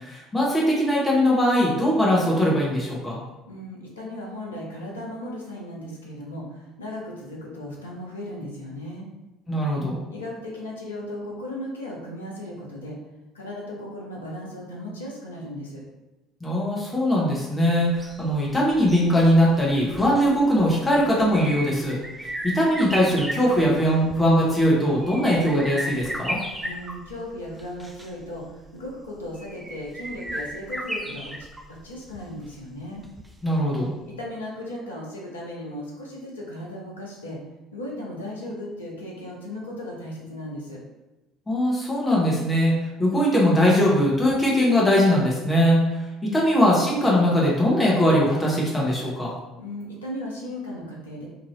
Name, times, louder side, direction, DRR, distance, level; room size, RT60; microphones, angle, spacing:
voice 1, 0.0-3.2 9.5-10.0 16.4-26.4 33.4-33.9 41.5-45.8 46.2-49.3, equal, 15° left, -4 dB, 0.9 m, -21 dB
voice 2, 3.5-9.1 10.1-13.0 13.3-15.8 26.6-33.0 34.2-37.4 37.7-40.8 49.6-51.3, left 1 dB, 85° left, -3 dB, 0.7 m, -36 dB
sound 1, 17.9-33.8 34.1-34.2, right 1 dB, 15° right, 0.5 m, -36 dB
2.6 x 2.6 x 3.1 m, 1.0 s
figure-of-eight pair, 60°, 0 cm